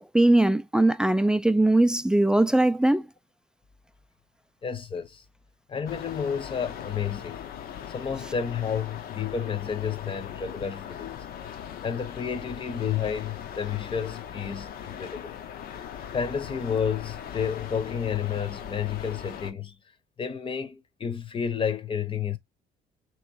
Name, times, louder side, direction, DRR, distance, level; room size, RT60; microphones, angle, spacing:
voice 1, 0.0-3.1, right 1 dB, 5° right, 0.3 m, -21 dB
voice 2, 4.6-5.2 5.7-7.5 7.9-11.2 11.5-15.4 16.1-19.8 20.2-22.4, left 7 dB, 30° left, 0.8 m, -31 dB
sound 1, 5.9-19.5, left 9 dB, 65° left, 0.8 m, -40 dB
3.1 x 3.1 x 4.7 m
cardioid pair, 110°, 17 cm